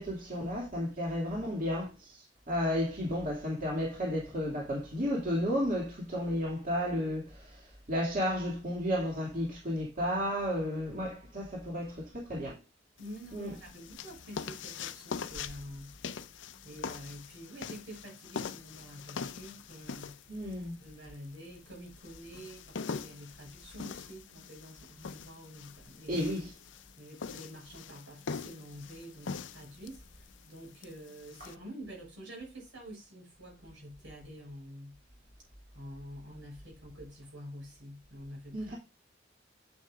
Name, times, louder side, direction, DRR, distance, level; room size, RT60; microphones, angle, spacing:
voice 1, 0.0-12.6 13.3-13.5 20.3-20.8 26.1-26.5 38.5-38.8, equal, 45° right, 2.3 m, -33 dB
sound 1, 13.0-31.5, left 5 dB, 75° left, 0.6 m, -43 dB
voice 2, 13.0-15.9 16.6-20.2 20.8-26.3 27.0-35.0 35.7-38.8, equal, 85° right, 5.8 m, -48 dB
9.2 x 7.8 x 2.5 m
head